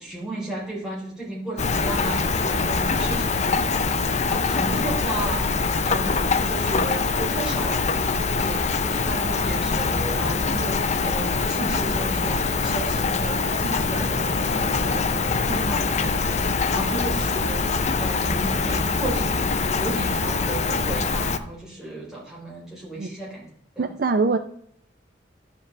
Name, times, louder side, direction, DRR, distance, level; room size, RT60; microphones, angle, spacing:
voice 1, 0.0-15.1 15.4-23.5 23.8-23.9, right 1 dB, 5° right, -6 dB, 3.7 m, -34 dB
Rain, 1.6-21.4, left 4 dB, 40° left, 0.5 m, -24 dB
sound 1, 9.3-15.5, left 2 dB, 20° left, 1.5 m, -37 dB
voice 2, 23.8-24.4, right 3 dB, 50° right, 8 dB, 0.5 m, -23 dB
11.0 x 7.3 x 3.3 m, 0.69 s
head